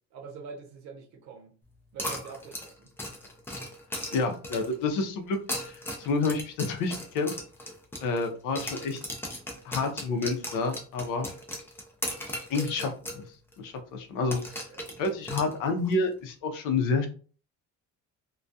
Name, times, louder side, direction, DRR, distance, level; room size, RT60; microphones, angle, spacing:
voice 1, 0.1-1.6 1.9-2.9 14.7-15.0, right 5 dB, 60° right, 0.7 m, -45 dB
sound 1, 2.0-4.8 5.3-8.3 8.6-13.2 13.5-13.6 14.3-15.9, left 1 dB, 10° left, 0.3 m, -37 dB
voice 2, 4.1-7.3 8.0-9.0 9.6-11.3 12.5-13.2 13.6-14.4 15.0-17.1, left 3 dB, 90° left, 0.6 m, -29 dB
2.2 x 2.2 x 2.6 m
cardioid pair, 175°, 31 cm